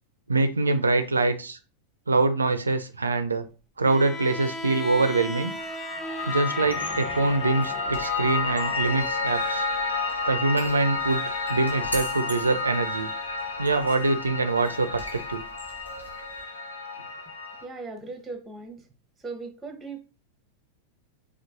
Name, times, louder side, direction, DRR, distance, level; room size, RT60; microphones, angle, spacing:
voice 1, 0.3-1.6 2.1-3.5 3.8-5.5 6.3-9.6 10.3-13.1 13.6-15.4, right 3 dB, 75° right, 9 dB, 0.4 m, -24 dB
Bowed string instrument, 3.8-9.1, left 1 dB, 10° left, 0.4 m, -37 dB
Piano, 5.3-17.6, left 3 dB, 65° left, 0.9 m, -31 dB
sound 1, 6.6-16.4, equal, 90° left, 1.1 m, -43 dB
voice 2, 17.6-18.8 19.2-20.0, right 3 dB, 10° right, 6 dB, 0.8 m, -38 dB
4.3 x 2.4 x 2.6 m, 0.33 s
figure-of-eight pair, 90°, 0 cm